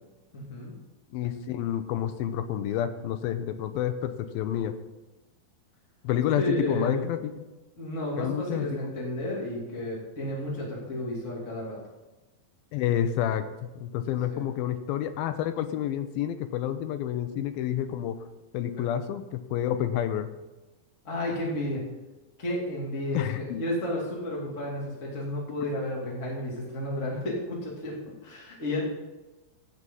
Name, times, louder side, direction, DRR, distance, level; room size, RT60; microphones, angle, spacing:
voice 1, 0.3-0.7 6.4-7.1 7.8-11.8 14.1-14.4 21.0-21.8 22.4-28.8, left 1 dB, 20° left, -4 dB, 2.5 m, -32 dB
voice 2, 1.1-4.8 6.0-7.3 8.2-9.0 12.7-18.2 18.5-20.3 23.1-23.6, left 10 dB, 80° left, 10 dB, 2.5 m, -29 dB
16.5 x 6.2 x 5.5 m, 1.1 s
omnidirectional pair, 4.3 m